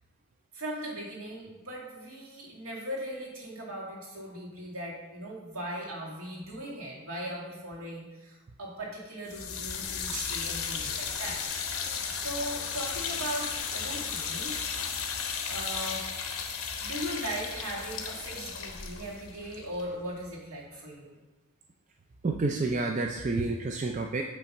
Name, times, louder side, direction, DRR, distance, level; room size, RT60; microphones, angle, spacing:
voice 1, 0.5-11.4 12.1-14.6 15.5-16.0 16.8-21.2, right 1 dB, 70° right, -4 dB, 2.2 m, -38 dB
sound 1, 9.3-20.4, left 6 dB, 65° left, 0.9 m, -35 dB
voice 2, 22.2-24.2, right 3 dB, 35° right, 2 dB, 0.4 m, -29 dB
8.7 x 3.4 x 5.2 m, 1.1 s
head